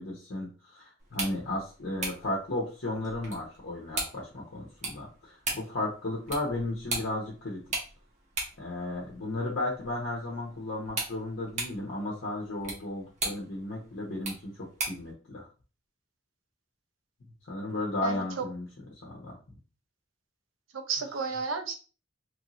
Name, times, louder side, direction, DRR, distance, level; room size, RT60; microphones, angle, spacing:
voice 1, 0.0-7.6 8.6-15.5 17.4-18.7 19.0-19.4, left 2 dB, 70° left, -4 dB, 1.0 m, -34 dB
sound 1, 1.0-15.1, right 2 dB, 40° right, 1.1 m, -39 dB
voice 2, 18.0-18.5 20.7-21.8, right 4 dB, 90° right, 7 dB, 0.6 m, -32 dB
3.2 x 2.7 x 3.1 m, 0.35 s
head